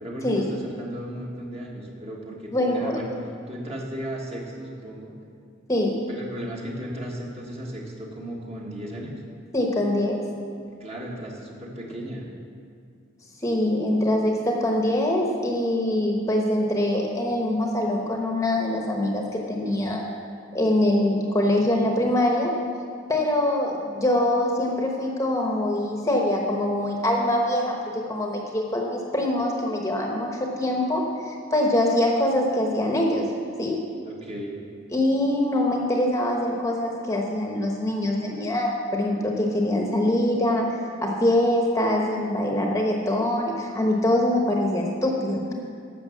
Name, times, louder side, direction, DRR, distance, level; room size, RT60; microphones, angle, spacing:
voice 1, 0.0-3.1 3.5-5.1 6.0-9.2 10.7-12.3 34.0-34.5, equal, 30° right, -2 dB, 1.6 m, -35 dB
voice 2, 2.5-2.9 5.7-6.0 9.5-10.2 13.4-20.0 20.5-22.5 23.1-33.3 33.6-33.8 34.9-40.7 41.0-45.4, left 1 dB, 15° left, 0 dB, 1.0 m, -24 dB
11.5 x 6.7 x 7.1 m, 2.3 s
head